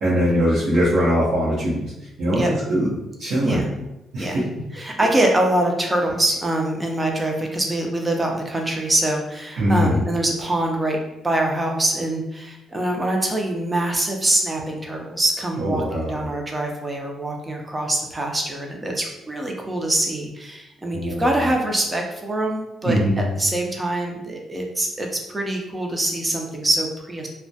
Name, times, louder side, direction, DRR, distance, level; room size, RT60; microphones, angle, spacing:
voice 1, 0.0-1.9 2.2-2.9 3.2-3.7 4.1-4.4 9.6-10.0 15.6-16.2 20.9-21.2 22.8-23.2, equal, 70° right, -10 dB, 0.7 m, -21 dB
voice 2, 4.7-27.3, right 1 dB, 20° right, 1 dB, 0.5 m, -24 dB
2.2 x 2.1 x 2.7 m, 0.93 s
cardioid pair, 90°, 0 cm